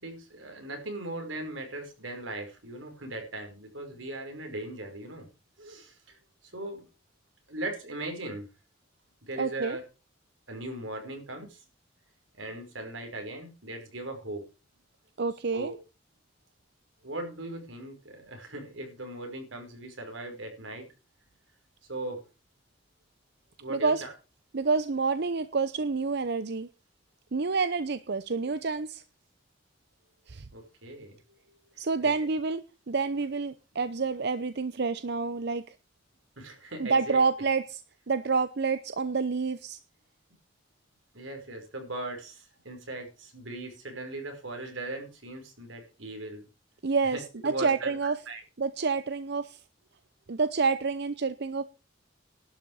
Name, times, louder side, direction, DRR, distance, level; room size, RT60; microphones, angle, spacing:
voice 1, 0.0-5.3 5.6-6.8 7.5-8.5 9.2-9.8 10.5-11.6 12.3-14.5 15.5-15.8 17.0-20.9 21.9-22.2 23.6-24.1 30.5-31.2 31.7-32.1 36.4-37.2 41.1-46.4 47.1-48.4, right 2 dB, 90° right, 4 dB, 5.3 m, -39 dB
voice 2, 9.4-9.8 15.2-15.7 23.7-24.0 24.5-26.7 27.3-29.0 30.3-30.5 31.8-32.6 32.9-35.6 36.8-37.8 38.1-39.8 46.8-48.2 48.6-49.6 50.3-51.6, right 4 dB, 60° right, 13 dB, 0.7 m, -28 dB
12.0 x 6.4 x 8.8 m, 0.32 s
head